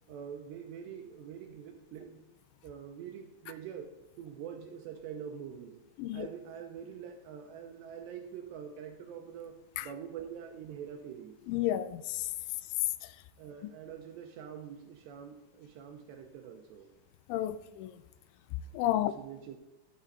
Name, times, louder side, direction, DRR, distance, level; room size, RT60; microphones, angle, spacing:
voice 1, 0.1-2.3 2.6-3.9 4.2-5.8 6.1-11.4 13.4-16.9 18.9-19.6, right 8 dB, 75° right, 2.7 m, -45 dB
voice 2, 11.5-12.3 17.3-17.9 18.7-19.1, left 13 dB, 85° left, 2.9 m, -31 dB
13.5 x 6.3 x 4.1 m
omnidirectional pair, 5.5 m